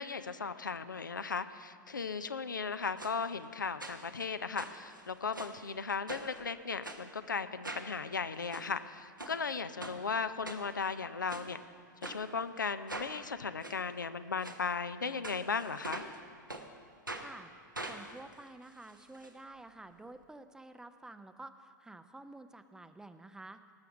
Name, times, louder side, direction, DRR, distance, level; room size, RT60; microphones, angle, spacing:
voice 1, 0.0-11.6 12.0-16.0, left 5 dB, 75° left, 12 dB, 0.6 m, -36 dB
sound 1, 3.0-3.1 3.8-4.2 4.6-5.6 6.1-6.4 6.8-7.0 7.6-7.9 8.3-8.6 9.2-9.4 9.8-10.0 10.4-10.9 11.3-11.5 12.0-12.2 12.9-13.1 13.6-13.8 14.4-14.6 15.2-16.2 16.5-16.6 17.1-17.3 17.7-19.3 19.6-19.7 19.9-20.0, right 2 dB, 90° right, 1.1 m, -43 dB
voice 2, 17.2-17.5 17.9-23.6, right 2 dB, 5° right, 10 dB, 0.5 m, -50 dB
19.0 x 7.0 x 6.0 m, 2.1 s
figure-of-eight pair, 90°, 10 cm